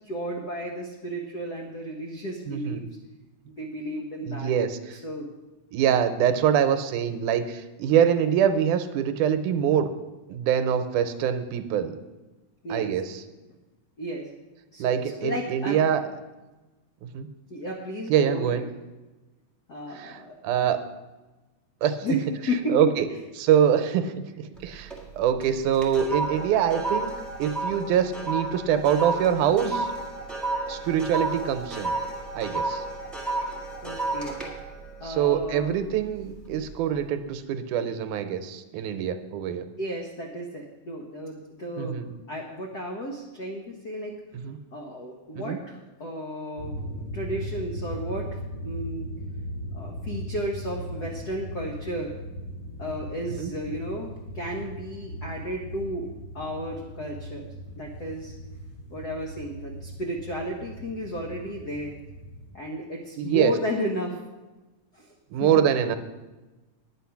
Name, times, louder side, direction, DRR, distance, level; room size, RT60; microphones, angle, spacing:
voice 1, 0.0-2.8 3.5-4.5 4.9-5.3 12.6-12.9 14.0-14.3 14.7-15.9 17.5-18.6 19.7-20.3 22.0-22.9 33.8-34.4 35.0-35.8 39.8-44.1 44.7-46.8 47.1-48.3 48.6-49.1 49.7-52.1 52.8-56.1 56.3-57.5 57.7-58.3 58.9-62.0 62.5-64.2 64.9-65.1 65.4-65.5, equal, 65° left, 0 dB, 1.0 m, -33 dB
voice 2, 2.5-2.9 4.2-4.8 5.7-9.9 10.3-12.0 12.7-13.2 14.8-16.0 17.0-17.3 18.1-18.6 20.0-20.8 21.8-22.0 22.7-23.1 23.3-24.9 25.2-27.1 27.4-29.9 30.7-31.9 32.4-32.8 35.0-39.7 41.8-42.1 44.4-44.6 45.3-45.6 53.4-53.5 63.2-63.5 65.3-66.0, right 9 dB, 80° right, 9 dB, 2.2 m, -24 dB
sound 1, 24.6-25.1 25.4-36.0 36.4-36.7, right 2 dB, ahead, 0.5 m, -32 dB
sound 2, 46.6-62.5, equal, 30° left, 3.1 m, -38 dB
10.0 x 9.9 x 5.8 m, 1.1 s
omnidirectional pair, 3.6 m